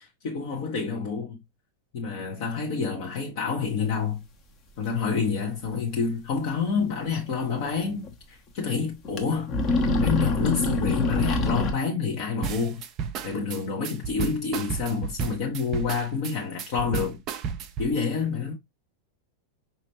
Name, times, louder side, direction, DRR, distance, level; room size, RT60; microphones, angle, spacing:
voice 1, 0.0-1.4 1.9-4.2 4.8-9.5 10.0-12.8 13.2-17.2 17.8-18.5, left 5 dB, 50° left, 1.1 m, -28 dB
sound 1, 5.6-5.7 6.0-6.1 7.6-7.7 8.1-8.2 9.0-9.2 9.5-11.7, left 3 dB, 30° left, 1.0 m, -24 dB
sound 2, 12.4-17.9, right 7 dB, 35° right, 0.5 m, -33 dB
5.2 x 2.9 x 2.8 m
figure-of-eight pair, 90°, 0 cm